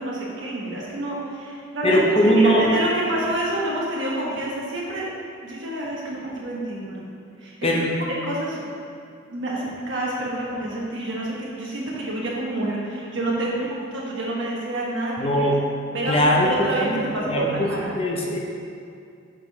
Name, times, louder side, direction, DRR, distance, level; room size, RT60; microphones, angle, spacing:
voice 1, 0.0-5.1 5.4-6.9 7.4-7.7 8.2-8.6 9.3-15.5 15.9-16.9 17.1-17.9, right 1 dB, 65° right, -4 dB, 1.3 m, -28 dB
voice 2, 1.8-2.7 7.6-7.9 15.2-15.6 16.1-17.7 18.0-18.4, equal, 30° left, -2 dB, 0.6 m, -20 dB
6.7 x 3.7 x 4.7 m, 2.4 s
head